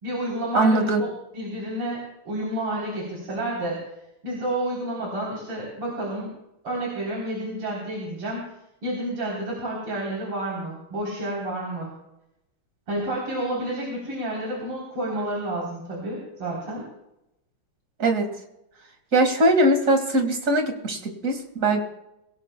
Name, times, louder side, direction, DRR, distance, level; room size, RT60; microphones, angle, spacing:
voice 1, 0.0-3.8 4.2-6.3 6.6-8.4 8.8-11.9 12.9-16.9, right 1 dB, 85° right, -3 dB, 4.6 m, -30 dB
voice 2, 0.5-1.0 18.0-18.3 19.1-21.8, right 1 dB, 40° right, 5 dB, 2.2 m, -21 dB
23.5 x 17.0 x 2.2 m, 0.85 s
omnidirectional pair, 2.4 m